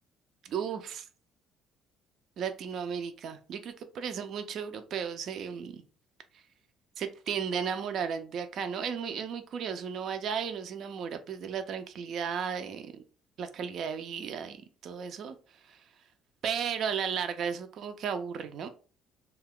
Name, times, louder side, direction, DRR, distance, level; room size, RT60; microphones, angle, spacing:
voice 1, 0.4-1.1 2.4-5.8 7.0-13.0 13.4-15.3 15.6-15.8 16.4-18.7, right 7 dB, 65° right, 0.4 m, -34 dB
2.8 x 2.3 x 3.5 m
supercardioid pair, 85°, 0 cm